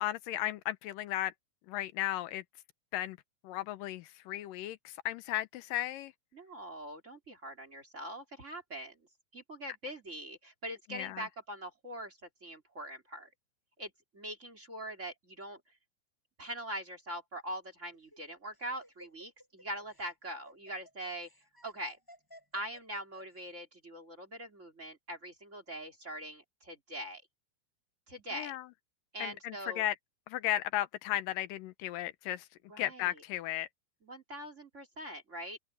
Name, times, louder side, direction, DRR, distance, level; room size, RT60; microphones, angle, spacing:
voice 1, 0.0-1.3 1.7-2.4 2.9-3.2 3.4-6.1 10.9-11.3 28.3-28.7 29.2-30.0 30.3-32.5 32.8-33.7, left 14 dB, 85° left, 2.4 m, -35 dB
voice 2, 6.3-9.0 9.3-13.3 13.8-15.6 16.4-21.3 21.6-22.0 22.5-27.2 28.1-28.6 29.1-29.8 32.7-33.1 34.0-35.6, right 1 dB, 20° right, 3.1 m, -43 dB
Laughter, 17.9-23.4, equal, 5° left, 6.7 m, -57 dB
open air
omnidirectional pair, 4.0 m